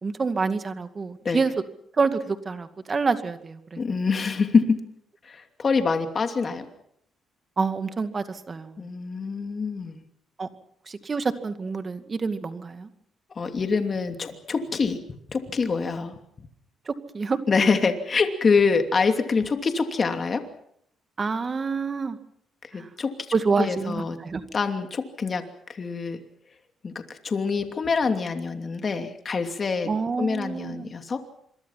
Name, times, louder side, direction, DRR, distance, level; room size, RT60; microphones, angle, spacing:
voice 1, 0.0-1.5 2.0-3.8 7.6-8.7 10.4-10.5 10.9-12.9 16.9-17.4 21.2-22.2 22.8-22.9 23.3-24.4 29.8-30.9, right 4 dB, 35° right, 9 dB, 2.1 m, -27 dB
voice 2, 3.8-4.8 5.2-6.7 8.8-10.0 13.4-15.0 15.3-16.2 17.5-20.4 22.6-23.1 23.6-24.2 24.5-25.4 25.7-26.2 26.8-29.9 30.2-31.2, left 4 dB, 40° left, 6 dB, 2.8 m, -25 dB
27.5 x 23.0 x 5.9 m, 0.70 s
cardioid pair, 90°, 0 cm